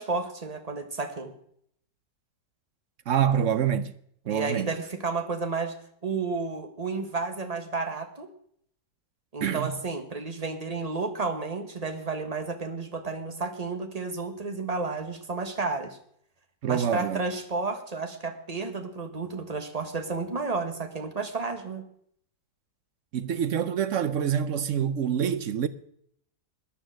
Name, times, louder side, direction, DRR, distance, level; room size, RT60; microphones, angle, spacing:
voice 1, 0.0-1.3 4.3-5.7 6.0-8.3 9.3-16.0 16.7-21.8, right 4 dB, 25° right, 1.4 m, -32 dB
voice 2, 3.1-3.9 4.3-4.7 9.4-9.7 16.6-17.2 23.1-25.7, right 8 dB, 60° right, 0.9 m, -26 dB
13.5 x 10.0 x 6.4 m
omnidirectional pair, 1.8 m